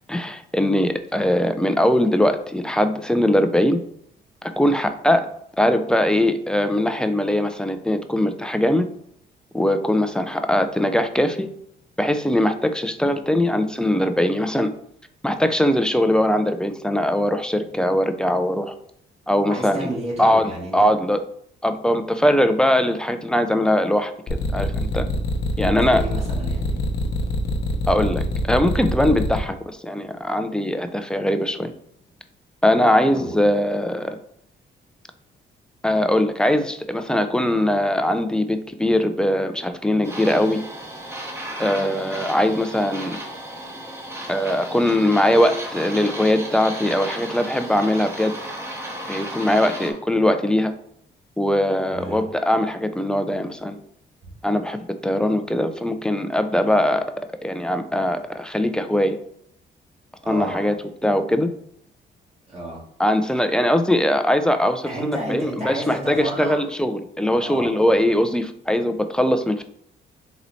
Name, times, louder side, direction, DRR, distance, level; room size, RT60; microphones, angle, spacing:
voice 1, 0.1-3.8 4.4-5.3 5.6-8.9 9.5-11.5 12.0-14.7 15.2-18.7 19.3-19.9 20.2-21.2 21.6-24.1 24.5-25.0 25.6-26.0 27.9-31.7 32.6-34.2 35.8-40.6 41.6-43.2 44.3-48.3 49.1-50.7 51.4-53.8 54.4-57.1 57.4-59.2 60.3-60.7 61.0-61.5 63.0-69.6, left 1 dB, 5° left, 8 dB, 0.4 m, -21 dB
voice 2, 19.5-20.9 25.7-26.8 33.1-33.3 51.9-52.2 60.2-60.6 62.5-62.8 64.8-66.6 67.4-68.0, right 1 dB, 30° right, -5 dB, 1.6 m, -31 dB
sound 1, 24.3-29.4, left 2 dB, 55° left, 0.8 m, -25 dB
sound 2, 40.0-49.9, right 1 dB, 10° right, 1.0 m, -34 dB
4.1 x 3.0 x 4.1 m, 0.69 s
cardioid pair, 90°, 20 cm